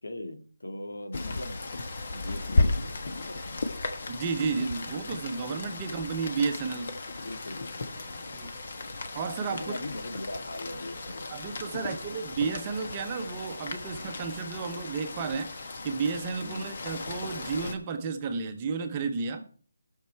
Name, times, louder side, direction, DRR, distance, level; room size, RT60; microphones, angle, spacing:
voice 1, 0.0-1.6 2.1-3.7 5.8-5.9 7.2-8.4 9.5-11.4 11.7-11.8 16.4-16.7, left 1 dB, 85° left, 6 dB, 1.9 m, -40 dB
Rain, 1.1-17.7, left 2 dB, 45° left, 1.3 m, -35 dB
voice 2, 4.1-6.9 8.3-8.5 9.1-9.7 11.3-19.5, right 5 dB, 20° right, 5 dB, 0.8 m, -32 dB
16.5 x 6.6 x 4.5 m, 0.43 s
hypercardioid pair, 170°, 0 cm